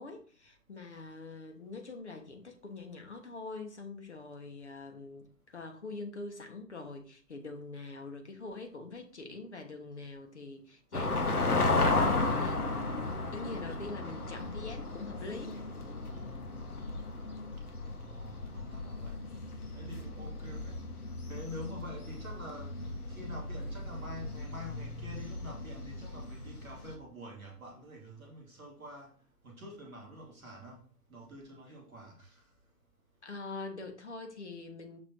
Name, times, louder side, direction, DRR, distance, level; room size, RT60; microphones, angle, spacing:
voice 1, 0.0-12.7 13.3-15.6 33.2-35.0, left 3 dB, 45° left, 1.2 m, -44 dB
sound 1, 10.9-27.0, left 3 dB, 60° left, 1.3 m, -35 dB
voice 2, 17.8-19.2 19.7-20.8 21.3-22.7 23.1-29.1 29.4-30.8 31.1-32.4, left 1 dB, ahead, 0.8 m, -47 dB
6.4 x 3.9 x 4.5 m
figure-of-eight pair, 145°, 49 cm